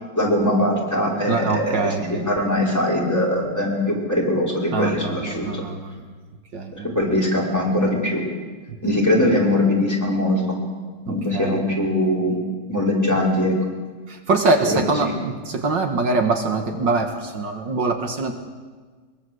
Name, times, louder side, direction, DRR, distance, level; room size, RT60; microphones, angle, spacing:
voice 1, 0.2-5.6 6.7-8.2 8.8-10.6 11.1-12.4 12.7-13.6 14.7-15.1, left 1 dB, 10° left, -3 dB, 5.5 m, -21 dB
voice 2, 1.3-2.2 4.7-6.0 6.5-6.9 11.3-11.6 14.1-18.3, right 3 dB, 70° right, 5 dB, 2.2 m, -23 dB
23.0 x 23.0 x 8.1 m, 1.5 s
omnidirectional pair, 2.1 m